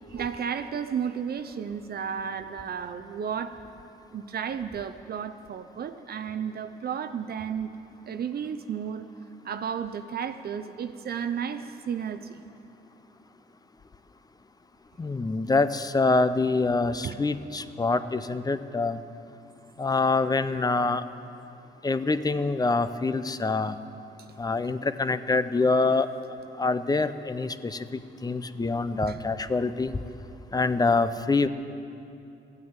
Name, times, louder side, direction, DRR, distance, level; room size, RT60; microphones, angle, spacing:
voice 1, 0.1-3.5 4.1-7.7 8.1-9.1 9.4-12.4 17.0-17.2 29.1-29.2, right 7 dB, 50° right, 9 dB, 0.6 m, -33 dB
voice 2, 15.0-19.0 19.8-21.0 21.8-23.8 24.4-26.1 26.6-27.8 28.2-29.9 30.5-31.5, left 3 dB, 20° left, 12 dB, 0.6 m, -25 dB
14.5 x 9.5 x 8.9 m, 2.7 s
cardioid pair, 90°, 20 cm